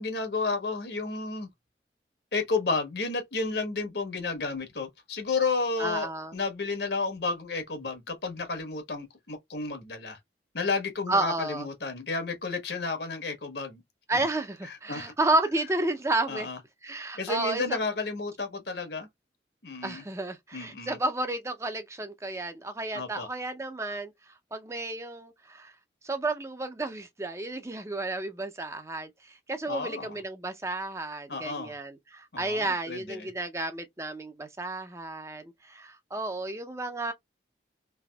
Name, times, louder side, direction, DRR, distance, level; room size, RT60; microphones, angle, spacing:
voice 1, 0.0-1.5 2.3-10.2 10.5-13.8 14.6-15.1 16.3-16.6 17.2-19.1 19.6-20.0 20.5-21.0 22.9-23.3 29.7-30.2 31.3-31.7 32.3-33.3, left 3 dB, 70° left, 1.2 m, -32 dB
voice 2, 5.8-6.3 11.1-11.7 14.1-16.5 16.8-17.8 19.8-25.7 26.0-37.1, right 2 dB, 15° right, 0.4 m, -32 dB
3.4 x 2.9 x 2.2 m
head